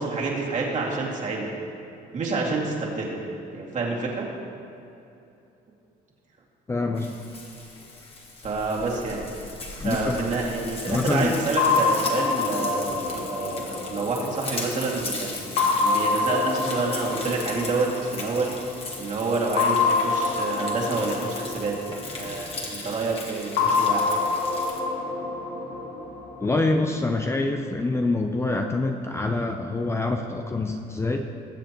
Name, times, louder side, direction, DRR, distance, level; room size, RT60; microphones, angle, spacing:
voice 1, 0.0-1.5 2.1-3.2 3.5-4.3 8.4-9.2 9.8-15.5 15.8-18.5 19.0-21.7 22.1-24.2, right 3 dB, 45° right, -3 dB, 2.3 m, -28 dB
voice 2, 6.7-7.1 9.8-10.2 10.9-11.3 26.4-31.3, left 2 dB, 15° left, 4 dB, 0.6 m, -25 dB
Frying (food), 7.0-24.8, left 2 dB, 35° left, 1.9 m, -38 dB
sound 1, 11.6-14.9 15.6-18.5 19.6-22.7 23.6-26.7, left 4 dB, 70° left, 1.3 m, -26 dB
20.5 x 7.5 x 3.0 m, 2.7 s
cardioid pair, 110°, 17 cm